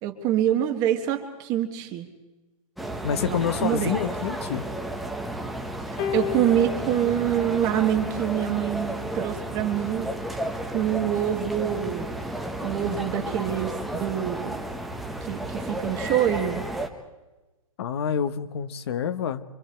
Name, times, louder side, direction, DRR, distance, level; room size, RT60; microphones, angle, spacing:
voice 1, 0.0-2.1 3.3-4.0 6.1-10.1 10.7-12.0 12.6-14.6 15.3-16.6, right 10 dB, 20° right, 6 dB, 1.5 m, -25 dB
sound 1, 2.8-16.9, right 1 dB, ahead, 1.0 m, -32 dB
voice 2, 3.0-4.7 17.8-19.4, left 8 dB, 50° left, 11 dB, 1.1 m, -27 dB
sound 2, 6.0-8.5 9.5-9.6, left 10 dB, 25° left, 1.2 m, -34 dB
26.0 x 25.0 x 4.5 m, 1.1 s
hypercardioid pair, 170°, 18 cm